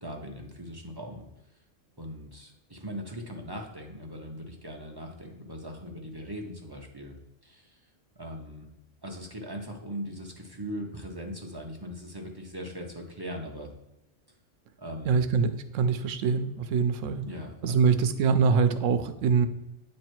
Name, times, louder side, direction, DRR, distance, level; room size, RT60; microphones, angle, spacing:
voice 1, 0.0-1.2 2.0-7.1 7.4-7.8 8.2-8.7 9.0-13.7 14.8-15.3 17.2-17.8, equal, 25° right, 1 dB, 0.6 m, -40 dB
voice 2, 15.1-17.3 17.6-19.5, right 5 dB, 80° right, 10 dB, 0.9 m, -24 dB
9.0 x 3.2 x 4.5 m, 0.92 s
omnidirectional pair, 1.3 m